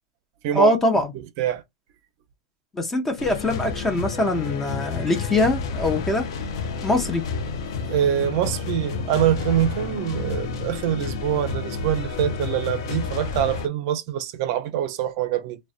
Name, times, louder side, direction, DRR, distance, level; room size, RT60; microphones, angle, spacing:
voice 1, 0.5-1.1 2.7-6.2 6.8-7.2, left 1 dB, 10° left, 0.5 m, -22 dB
sound 1, 3.2-13.7, left 5 dB, 65° left, 0.5 m, -30 dB
voice 2, 7.9-15.6, right 11 dB, 50° right, 0.4 m, -24 dB
2.4 x 2.1 x 2.4 m
supercardioid pair, 135°, 2 cm